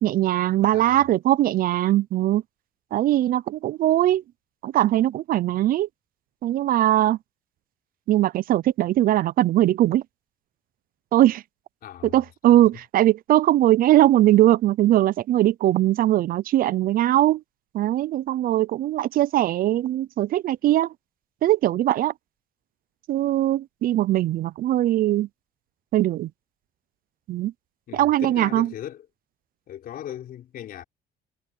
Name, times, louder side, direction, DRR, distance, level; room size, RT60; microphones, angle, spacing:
voice 1, 0.0-2.4 2.9-4.2 4.6-5.9 6.4-7.2 8.1-10.0 11.1-11.4 12.0-17.4 17.7-20.9 21.4-22.1 23.1-25.3 25.9-26.3 27.3-27.5 27.9-28.7, right 14 dB, 55° right, 0.5 m, -20 dB
voice 2, 0.7-1.0 11.8-12.2 27.9-29.1 29.7-30.8, left 11 dB, 60° left, 4.6 m, -38 dB
cardioid pair, 110°, 17 cm